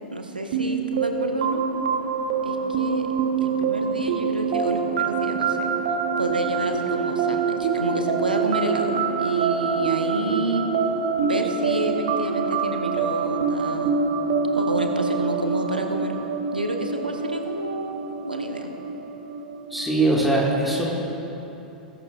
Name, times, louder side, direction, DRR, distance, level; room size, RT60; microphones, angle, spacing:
voice 1, 0.1-1.6 2.4-3.0 3.4-5.7 6.2-10.6 11.2-13.9 14.5-16.1 16.5-18.0 18.2-18.7, right 1 dB, 85° right, 4 dB, 1.0 m, -29 dB
sound 1, 0.5-20.0, right 5 dB, 55° right, 0.8 m, -25 dB
voice 2, 19.7-20.9, right 2 dB, ahead, -4 dB, 1.8 m, -21 dB
19.5 x 11.0 x 2.4 m, 2.9 s
figure-of-eight pair, 95°, 5 cm